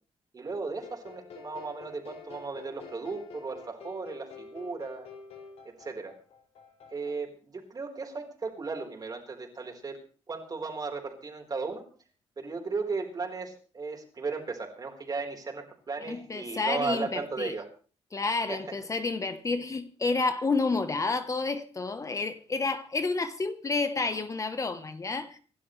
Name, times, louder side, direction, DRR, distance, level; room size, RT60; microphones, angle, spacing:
voice 1, 0.3-5.1 5.6-6.1 6.9-9.9 10.3-11.8 12.4-17.6 18.5-18.6, right 4 dB, 35° right, 4.3 m, -36 dB
sound 1, 0.8-7.1, left 5 dB, 75° left, 5.6 m, -48 dB
voice 2, 16.1-17.5 18.1-25.4, left 3 dB, 30° left, 1.1 m, -30 dB
26.5 x 12.5 x 3.3 m
cardioid pair, 120°, 11 cm